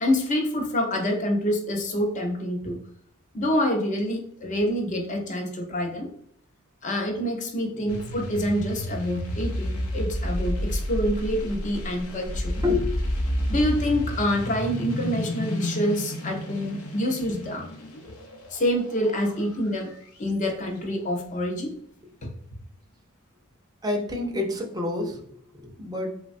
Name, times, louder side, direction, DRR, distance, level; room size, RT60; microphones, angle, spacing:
voice 1, 0.0-2.8 3.3-6.1 6.8-12.6 13.5-17.7 18.5-19.9 20.2-21.8 22.2-22.3, equal, 35° left, 3 dB, 0.5 m, -26 dB
sound 1, 7.9-20.3, equal, 90° left, 0.5 m, -31 dB
voice 2, 23.8-26.2, left 3 dB, 20° right, 2 dB, 0.5 m, -28 dB
3.2 x 2.2 x 2.5 m, 0.63 s
head